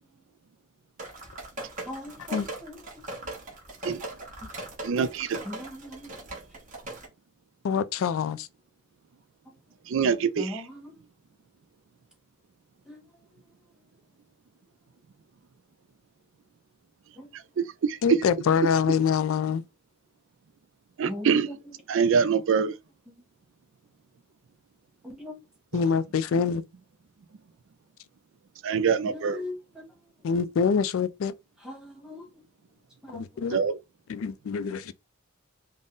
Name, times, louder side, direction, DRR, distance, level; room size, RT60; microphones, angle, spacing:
sound 1, 1.0-7.1, right 1 dB, 40° right, 1.3 m, -40 dB
voice 1, 1.9-2.8 5.4-6.1 10.4-11.0 12.8-13.0 17.2-17.3 21.0-21.7 25.0-25.4 29.0-29.8 31.6-32.3 33.0-33.2, left 1 dB, 5° right, 1.3 m, -39 dB
voice 2, 4.8-5.4 9.9-10.6 17.6-18.0 21.0-21.5 21.9-22.7 28.6-29.4 33.5-33.8, right 6 dB, 65° right, 0.4 m, -24 dB
voice 3, 7.6-8.5 18.0-19.6 25.7-26.6 30.2-31.3 33.1-33.6 34.1-34.9, left 6 dB, 75° left, 0.3 m, -25 dB
3.6 x 2.1 x 3.8 m
head